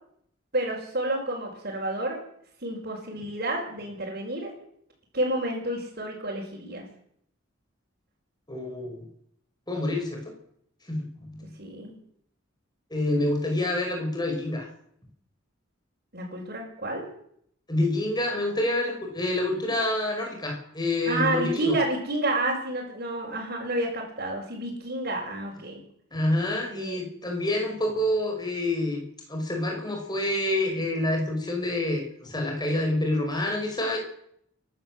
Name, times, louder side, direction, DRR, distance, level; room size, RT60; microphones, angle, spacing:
voice 1, 0.5-2.2 2.6-4.5 5.1-6.8 11.6-11.9 16.1-17.0 21.1-25.8 26.7-27.0, right 1 dB, 45° right, -5 dB, 5.9 m, -30 dB
voice 2, 8.5-9.0 9.7-10.3 10.9-11.5 12.9-14.7 17.7-21.8 26.1-29.0 29.3-34.0, left 1 dB, 20° left, 2 dB, 5.3 m, -27 dB
29.5 x 12.5 x 7.7 m, 0.70 s
head